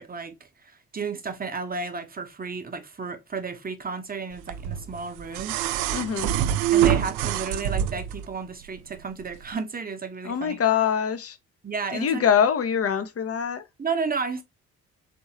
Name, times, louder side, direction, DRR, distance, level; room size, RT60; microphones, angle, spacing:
voice 1, 0.0-5.6 6.7-10.6 11.6-12.2 13.8-14.4, right 5 dB, 20° right, 1.0 m, -32 dB
sound 1, 4.5-8.3 9.5-9.6, right 10 dB, 65° right, 0.5 m, -25 dB
voice 2, 5.9-6.3 10.2-11.4 11.9-13.6, left 8 dB, 30° left, 0.8 m, -24 dB
4.3 x 3.6 x 2.9 m
figure-of-eight pair, 40°, 44 cm